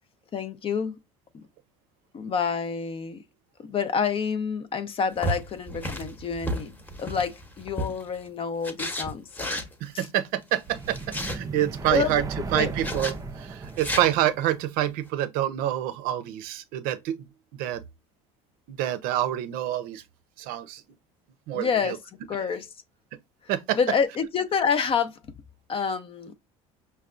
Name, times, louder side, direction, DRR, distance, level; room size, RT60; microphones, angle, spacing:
voice 1, 0.3-1.0 2.1-3.2 3.6-9.6 9.9-10.1 11.9-12.1 12.5-12.7 21.5-22.0 22.3-22.7 23.8-25.2 25.7-26.3, left 6 dB, 35° left, 0.5 m, -28 dB
sound 1, 5.2-8.2 8.6-9.7 10.8-11.4 12.8-13.2 13.7-14.0, equal, 10° left, 0.9 m, -32 dB
voice 2, 9.8-11.0 11.2-12.2 12.5-17.3 17.5-17.8 18.7-20.0 20.4-20.8 21.5-22.0 23.5-23.8, right 12 dB, 70° right, 0.6 m, -27 dB
sound 2, 10.7-14.6, right 4 dB, 20° right, 0.4 m, -36 dB
5.4 x 2.2 x 2.4 m
supercardioid pair, 90°, 16 cm